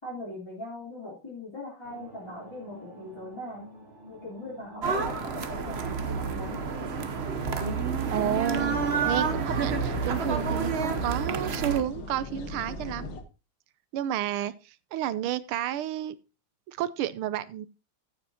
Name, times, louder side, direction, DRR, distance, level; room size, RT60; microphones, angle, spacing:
voice 1, 0.0-3.6 4.1-6.6, left 1 dB, 10° left, -7 dB, 3.5 m, -40 dB
sound 1, 1.8-10.4, right 1 dB, 30° right, 4.3 m, -47 dB
sound 2, 4.8-11.8, right 5 dB, 60° right, 0.6 m, -29 dB
sound 3, 8.1-13.2, left 1 dB, 60° left, 2.0 m, -36 dB
voice 2, 8.1-13.1 13.9-16.2 16.7-17.7, right 11 dB, 90° right, 16 dB, 1.6 m, -31 dB
14.5 x 7.6 x 2.9 m, 0.29 s
omnidirectional pair, 2.3 m